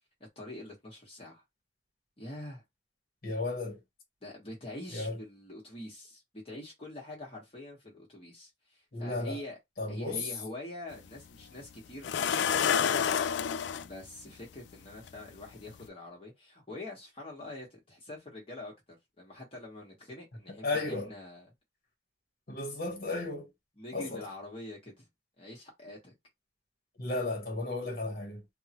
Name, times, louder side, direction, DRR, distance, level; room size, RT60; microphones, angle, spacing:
voice 1, 0.4-1.4 2.2-2.6 4.2-9.6 9.9-13.2 13.8-21.5 23.8-25.1 25.4-26.1, left 1 dB, 35° left, 1.1 m, -45 dB
voice 2, 3.2-3.8 4.9-5.2 8.9-9.4 9.8-10.3 20.6-21.1 22.5-23.5 23.9-24.3 27.0-28.4, left 2 dB, 55° left, 1.1 m, -34 dB
sound 1, 10.9-11.0 12.0-13.9 15.1-15.2 15.7-15.9, left 8 dB, 85° left, 0.3 m, -28 dB
3.5 x 2.1 x 2.9 m
head